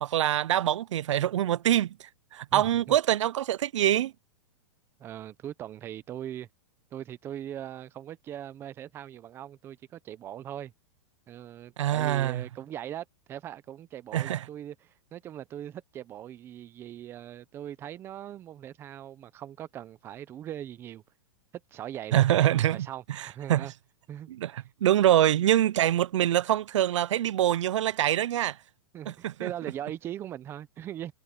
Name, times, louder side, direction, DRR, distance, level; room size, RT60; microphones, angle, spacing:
voice 1, 0.0-4.1 11.8-12.4 14.1-14.4 22.1-22.8 23.2-23.7 24.4-28.6 29.1-29.5, right 12 dB, 80° right, 0.4 m, -25 dB
voice 2, 2.5-3.0 5.0-6.5 6.9-10.7 11.3-21.0 21.7-23.7 24.1-24.3 28.9-31.1, right 11 dB, 15° right, 0.6 m, -40 dB
hypercardioid pair, 165°, 15 cm